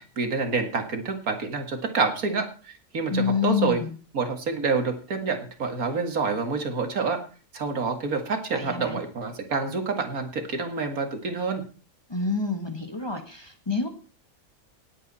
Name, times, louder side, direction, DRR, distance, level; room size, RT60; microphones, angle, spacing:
voice 1, 0.0-3.8 4.1-7.2 7.5-11.6, right 4 dB, 85° right, 5 dB, 2.4 m, -27 dB
voice 2, 3.1-3.9 8.5-9.0 12.1-13.9, left 5 dB, 20° left, 5 dB, 1.6 m, -27 dB
19.0 x 8.3 x 4.2 m, 0.38 s
omnidirectional pair, 1.5 m